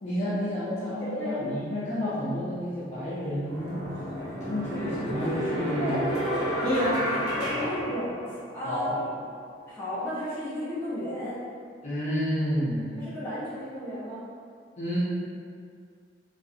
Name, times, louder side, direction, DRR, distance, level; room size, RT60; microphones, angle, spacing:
voice 1, 0.0-3.8 4.4-6.0 6.6-7.0 7.6-7.7 8.6-8.9 11.8-13.0 14.8-15.0, equal, 40° left, -11 dB, 0.5 m, -30 dB
voice 2, 0.7-1.5 5.6-6.1 7.3-9.0 9.7-11.4 13.0-14.2, left 1 dB, 10° left, -12 dB, 0.8 m, -34 dB
sound 1, 3.4-8.6, equal, 20° right, 1.1 m, -31 dB
2.4 x 2.3 x 2.7 m, 2.2 s
head